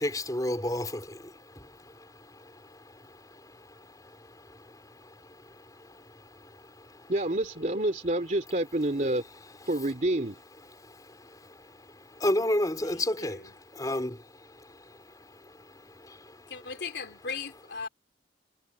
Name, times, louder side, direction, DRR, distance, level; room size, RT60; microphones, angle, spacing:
voice 1, 0.0-7.1 10.7-16.7, left 1 dB, 20° left, 4.0 m, -35 dB
voice 2, 7.1-9.2 9.7-10.4, right 1 dB, 45° right, 2.8 m, -28 dB
voice 3, 12.8-13.5 16.5-17.9, left 5 dB, 75° left, 3.3 m, -38 dB
head